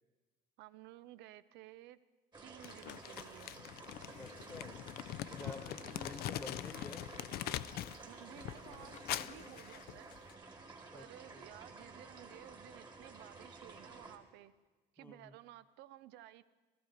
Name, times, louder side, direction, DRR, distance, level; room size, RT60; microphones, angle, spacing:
voice 1, 0.6-2.0 2.4-3.6 5.3-6.3 8.0-10.1 10.9-14.5 14.9-16.4, right 14 dB, 90° right, 15 dB, 0.5 m, -55 dB
sound 1, 2.3-14.2, right 3 dB, 25° right, 1.6 m, -53 dB
Crumpling crinkling, 2.6-8.0 8.3-10.3, left 13 dB, 65° left, 0.4 m, -43 dB
Toilet flush, 3.6-9.8, left 7 dB, 40° left, 0.8 m, -61 dB
voice 2, 4.1-4.8 5.3-7.1 10.9-11.5 15.0-15.4, left 2 dB, 10° left, 9 dB, 0.8 m, -50 dB
15.5 x 13.5 x 4.1 m, 1.3 s
cardioid pair, 110°, 17 cm